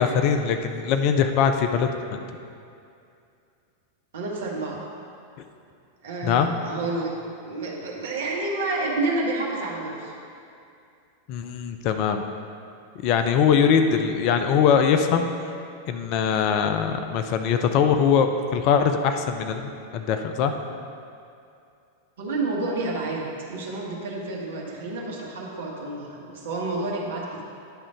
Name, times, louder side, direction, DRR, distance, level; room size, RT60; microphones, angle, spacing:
voice 1, 0.0-2.2 6.2-6.6 11.3-12.2 13.0-15.3 15.9-20.5, left 7 dB, 45° left, 7 dB, 0.4 m, -22 dB
voice 2, 4.1-4.8 6.0-7.1 7.4-10.1 22.2-27.4, right 2 dB, 60° right, -2 dB, 1.3 m, -29 dB
10.0 x 3.7 x 5.0 m, 2.5 s
figure-of-eight pair, 90°, 0 cm